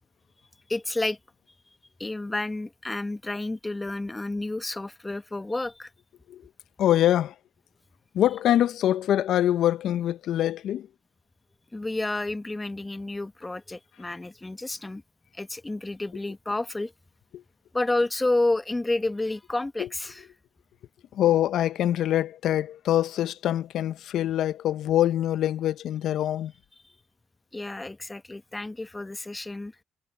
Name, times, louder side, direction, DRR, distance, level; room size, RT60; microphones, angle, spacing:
voice 1, 0.7-1.2 2.0-5.9 11.7-15.0 15.3-16.9 17.7-20.3 27.5-29.7, left 2 dB, 15° left, 1.3 m, -30 dB
voice 2, 6.8-7.3 8.1-10.9 17.3-17.4 19.8-19.9 21.1-26.5, left 12 dB, 70° left, 0.9 m, -24 dB
supercardioid pair, 65°, 0 cm